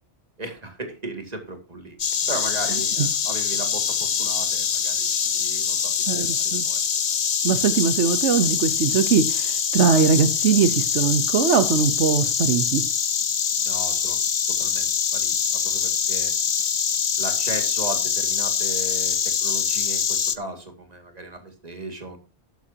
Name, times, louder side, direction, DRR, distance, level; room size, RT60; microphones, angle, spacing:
voice 1, 0.4-2.0 2.3-6.8 13.6-14.2 14.6-16.3 17.2-22.2, right 2 dB, 35° right, 5 dB, 2.4 m, -36 dB
Insect, 2.0-20.4, left 7 dB, 45° left, 0.8 m, -24 dB
voice 2, 6.1-6.7 7.4-12.8, right 6 dB, 85° right, 10 dB, 1.2 m, -21 dB
13.5 x 11.5 x 2.8 m, 0.29 s
omnidirectional pair, 1.2 m